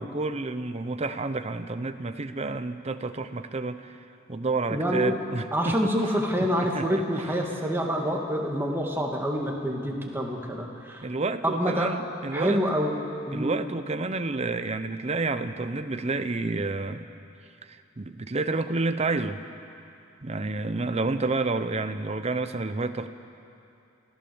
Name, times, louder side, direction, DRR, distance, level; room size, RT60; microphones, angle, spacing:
voice 1, 0.0-4.0 4.3-5.9 6.4-7.3 11.0-12.6 13.3-17.1 17.6-19.4 20.2-23.1, right 3 dB, 30° right, 9 dB, 0.7 m, -30 dB
voice 2, 4.7-5.2 5.5-11.1 11.4-12.0 12.3-12.9 13.3-13.5, equal, 10° right, 0 dB, 2.2 m, -27 dB
27.0 x 15.5 x 7.1 m, 2.6 s
head